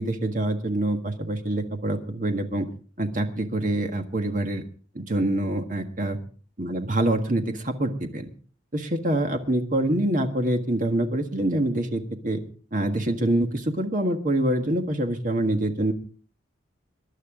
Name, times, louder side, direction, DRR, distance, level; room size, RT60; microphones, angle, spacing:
voice 1, 0.0-2.7 3.0-4.6 4.9-6.2 6.6-8.3 8.7-12.4 12.7-15.9, right 1 dB, 40° right, 6 dB, 1.7 m, -25 dB
22.5 x 11.0 x 3.7 m, 0.41 s
head